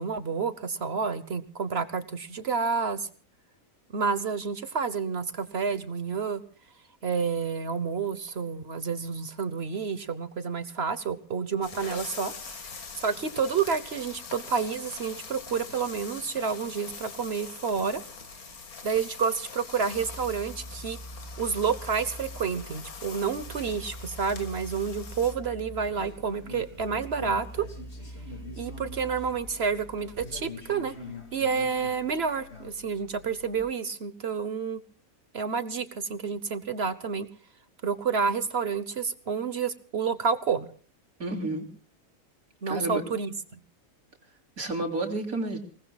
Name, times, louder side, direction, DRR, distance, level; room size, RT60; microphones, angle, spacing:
voice 1, 0.0-3.1 3.9-6.4 7.0-18.0 18.8-21.0 21.4-27.6 28.6-30.9 31.3-34.8 35.3-37.3 37.8-40.7 42.6-43.3, right 6 dB, 50° right, 13 dB, 1.1 m, -29 dB
sound 1, 11.6-25.3, left 5 dB, 75° left, 2.2 m, -43 dB
sound 2, 19.9-33.6, equal, 30° left, 5.1 m, -45 dB
sound 3, 25.9-32.7, left 2 dB, 45° left, 2.4 m, -44 dB
voice 2, 41.2-41.7 42.7-43.0 44.6-45.6, right 2 dB, 70° right, 3 dB, 3.7 m, -30 dB
29.5 x 19.0 x 2.3 m, 0.41 s
omnidirectional pair, 1.6 m